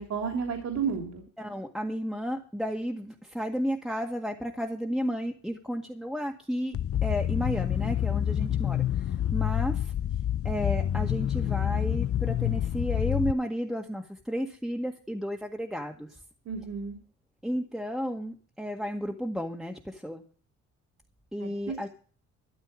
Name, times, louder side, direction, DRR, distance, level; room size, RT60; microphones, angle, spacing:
voice 1, 0.0-1.2 16.4-17.0 21.4-21.9, right 6 dB, 60° right, 2 dB, 3.2 m, -32 dB
voice 2, 1.4-9.9 10.4-16.2 17.4-20.2 21.3-21.9, equal, ahead, 2 dB, 1.8 m, -33 dB
sound 1, 6.7-13.3, left 11 dB, 50° left, 0.7 m, -28 dB
13.0 x 11.5 x 5.1 m, 0.42 s
cardioid pair, 90°, 30 cm